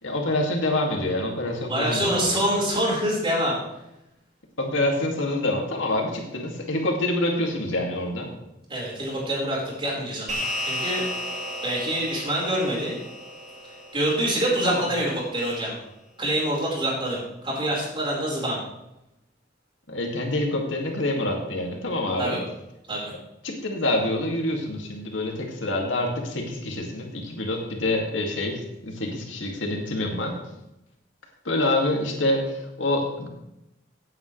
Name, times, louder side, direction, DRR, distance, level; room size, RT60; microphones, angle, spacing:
voice 1, 0.0-2.5 4.6-8.3 14.6-14.8 19.9-22.4 23.4-30.4 31.4-33.3, left 1 dB, 90° left, 1 dB, 2.5 m, -26 dB
voice 2, 1.7-3.6 8.7-11.2 11.6-13.0 13.9-15.8 16.2-18.6 22.2-22.4 22.9-23.1, right 1 dB, 30° right, -4 dB, 4.9 m, -26 dB
sound 1, 10.3-14.9, left 1 dB, 45° right, 4.4 m, -33 dB
17.0 x 9.0 x 3.4 m, 0.88 s
head